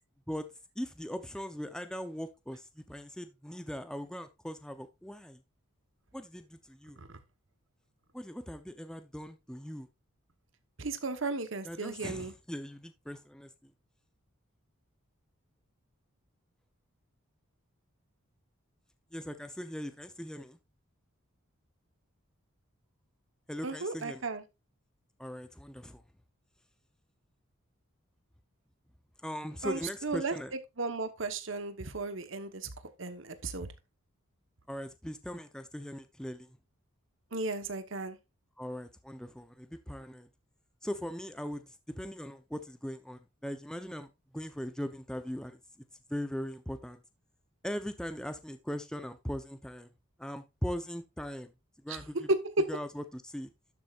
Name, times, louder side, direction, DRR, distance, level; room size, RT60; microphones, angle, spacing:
voice 1, 0.3-5.4 6.1-7.0 8.1-9.9 11.6-13.7 19.1-20.6 23.5-24.2 25.2-26.0 29.2-30.5 34.7-36.6 38.6-40.3 40.8-45.6 46.1-47.0 47.6-49.9 50.2-51.5 51.8-52.3 52.7-53.5, equal, 5° left, 0.6 m, -40 dB
voice 2, 10.8-12.3 23.6-24.4 29.6-30.4 30.8-32.7 33.0-33.7 37.3-38.2 51.9-52.0 52.4-52.5, right 3 dB, 60° right, 1.1 m, -36 dB
12.0 x 7.4 x 2.4 m
head